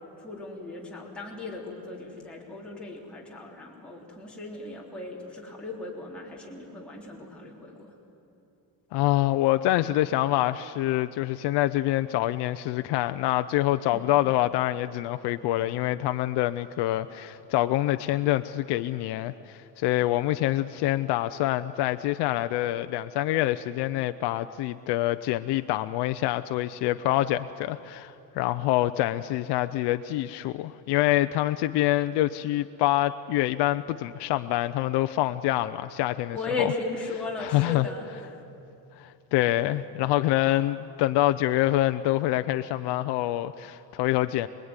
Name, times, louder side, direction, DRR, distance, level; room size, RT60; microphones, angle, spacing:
voice 1, 0.2-7.9 13.9-14.1 36.3-38.4 40.0-40.1, left 3 dB, 5° left, -4 dB, 3.7 m, -36 dB
voice 2, 8.9-36.7 37.4-37.9 39.0-44.5, left 15 dB, 90° left, 10 dB, 0.7 m, -26 dB
27.0 x 21.0 x 9.7 m, 2.8 s
cardioid pair, 160°, 39 cm